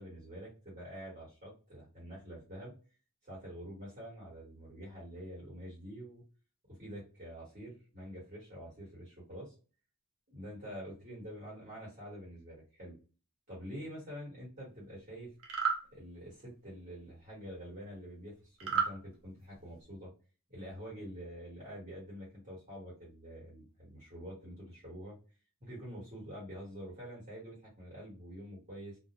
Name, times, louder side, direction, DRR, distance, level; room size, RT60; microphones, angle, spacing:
voice 1, 0.0-2.7 3.2-6.2 6.7-9.5 10.3-13.0 13.5-15.3 15.9-20.1 20.5-25.2 25.6-29.0, equal, 35° right, -6 dB, 1.1 m, -47 dB
sound 1, 15.4-15.8 18.6-18.9, right 6 dB, 65° right, 0.7 m, -31 dB
2.3 x 2.0 x 2.8 m, 0.34 s
head